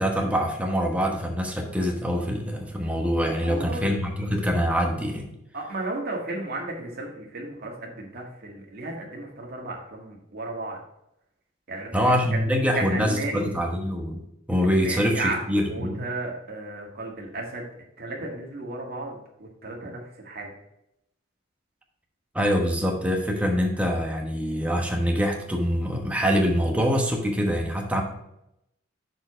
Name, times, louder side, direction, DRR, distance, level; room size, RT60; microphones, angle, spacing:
voice 1, 0.0-5.3 11.9-14.2 14.5-16.0 22.3-28.0, equal, 5° right, 1 dB, 1.1 m, -24 dB
voice 2, 3.4-3.9 5.5-10.8 11.7-12.4 12.7-13.5 14.7-17.7 18.0-20.5, right 2 dB, 50° right, 0 dB, 1.8 m, -34 dB
6.4 x 4.8 x 5.0 m, 0.80 s
head